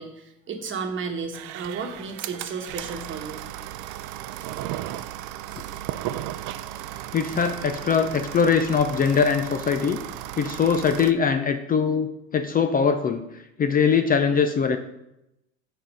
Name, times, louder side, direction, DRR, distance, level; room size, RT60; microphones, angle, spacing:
voice 1, 0.0-3.4, right 5 dB, 35° right, 4 dB, 1.3 m, -33 dB
sound 1, 1.3-11.1, right 13 dB, 65° right, 0.5 m, -35 dB
voice 2, 7.1-10.0 10.4-14.8, left 6 dB, 25° left, 8 dB, 0.5 m, -22 dB
5.9 x 4.3 x 5.1 m, 0.87 s
supercardioid pair, 90°, 33 cm